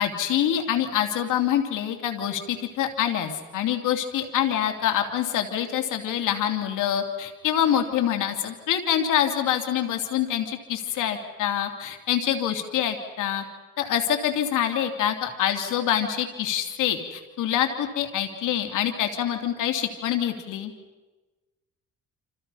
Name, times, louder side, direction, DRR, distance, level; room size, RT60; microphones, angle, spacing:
voice 1, 0.0-13.4 13.8-20.7, left 10 dB, 85° left, 5 dB, 3.0 m, -25 dB
28.5 x 27.5 x 5.6 m, 1.1 s
cardioid pair, 90°, 30 cm